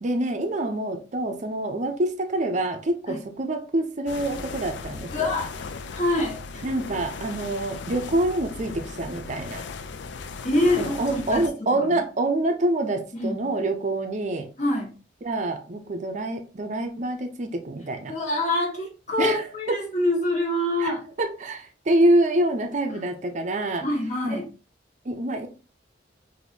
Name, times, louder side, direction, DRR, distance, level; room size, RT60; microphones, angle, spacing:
voice 1, 0.0-5.3 6.6-9.7 10.8-14.5 15.2-18.1 19.2-19.8 20.8-23.9 25.1-25.5, right 1 dB, 40° right, 0.5 m, -26 dB
sound 1, 4.1-11.5, left 4 dB, 70° left, 0.4 m, -37 dB
voice 2, 5.1-5.5 5.9-6.7 10.4-12.0 13.1-13.5 14.6-15.0 18.1-21.1 23.8-24.5, left 1 dB, 40° left, 1.5 m, -26 dB
6.0 x 2.6 x 2.7 m
head